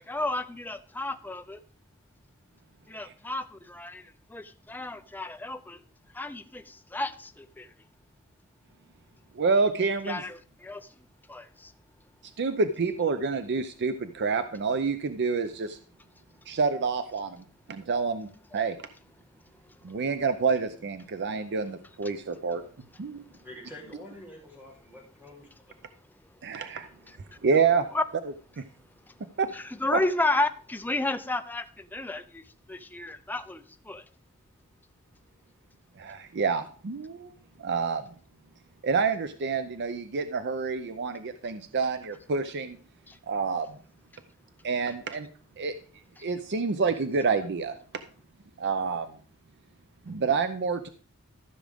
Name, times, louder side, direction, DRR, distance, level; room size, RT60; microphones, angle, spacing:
voice 1, 0.0-1.6 2.9-5.8 6.1-7.7 10.0-11.7 18.5-18.6 22.0-22.1 23.3-23.4 27.1-27.4 27.9-28.0 29.1-29.2 29.5-34.0 43.1-43.2 46.2-46.3, left 2 dB, 10° left, 0.5 m, -33 dB
voice 2, 9.4-10.2 12.4-15.8 16.5-18.3 18.5-18.8 19.8-22.6 23.0-23.2 26.4-26.9 27.4-27.8 28.6-28.7 29.4-29.5 36.0-37.3 37.6-38.0 38.8-42.8 43.3-43.8 44.6-45.3 45.6-45.7 46.2-47.8 48.6-49.1 50.1-50.9, right 5 dB, 50° right, 0.5 m, -28 dB
voice 3, 23.4-25.5, left 1 dB, 10° right, 3.3 m, -46 dB
14.0 x 6.3 x 3.5 m
head